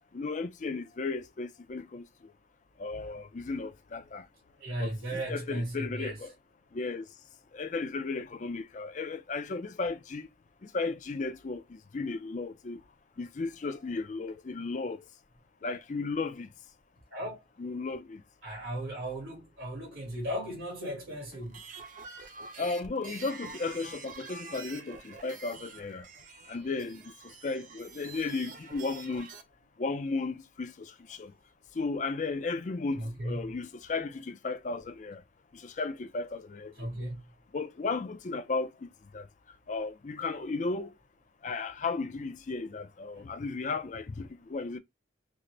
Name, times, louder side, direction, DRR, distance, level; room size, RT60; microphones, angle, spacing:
voice 1, 0.1-2.0 2.8-4.2 4.8-6.3 6.7-7.1 7.5-10.3 10.6-12.8 13.2-15.0 15.6-16.5 17.6-18.2 22.6-26.1 26.5-29.3 29.8-31.3 31.8-35.2 35.5-36.7 37.5-39.3 39.7-40.9 41.4-44.8, left 3 dB, 40° left, 0.4 m, -35 dB
voice 2, 4.6-6.2 17.1-17.4 18.4-21.6 32.9-33.5 36.8-37.2 43.2-43.3, right 1 dB, 90° right, 1.8 m, -36 dB
sound 1, 21.4-29.4, right 4 dB, 40° right, 0.5 m, -47 dB
3.8 x 2.0 x 3.1 m
head